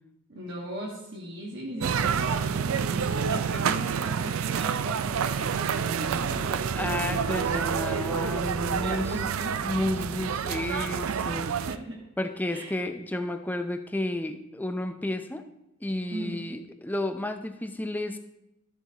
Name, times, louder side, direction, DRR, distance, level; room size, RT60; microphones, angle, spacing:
voice 1, 0.3-6.7 8.8-9.6 11.4-12.0 12.5-12.8 16.1-16.4, right 1 dB, 55° right, -4 dB, 1.6 m, -38 dB
sound 1, 1.8-11.8, right 7 dB, 80° right, 0.4 m, -28 dB
voice 2, 6.7-9.1 9.6-11.5 12.2-15.4 15.8-18.2, left 1 dB, 10° left, 7 dB, 0.5 m, -31 dB
13.5 x 7.1 x 2.9 m, 0.87 s
head